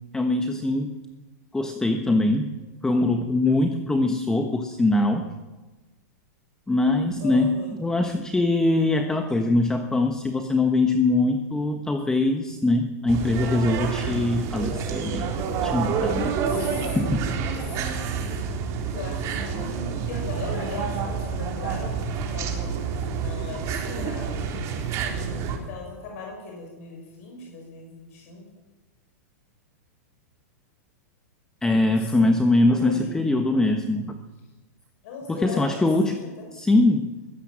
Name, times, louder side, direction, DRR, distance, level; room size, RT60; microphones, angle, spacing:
voice 1, 0.1-0.9 1.5-2.5 2.8-5.3 6.7-15.3 15.6-16.4 16.9-17.3 31.6-34.2 35.3-36.2 36.5-37.1, left 2 dB, 5° left, 6 dB, 1.3 m, -22 dB
voice 2, 7.2-7.8 14.6-14.7 16.4-18.1 18.8-24.5 25.5-28.5 31.8-32.4 32.7-33.2 35.0-36.5, left 4 dB, 60° left, 0 dB, 6.4 m, -39 dB
sound 1, 13.1-25.6, right 6 dB, 35° right, 3.8 m, -28 dB
23.0 x 16.5 x 7.6 m, 1.2 s
supercardioid pair, 145°, 9 cm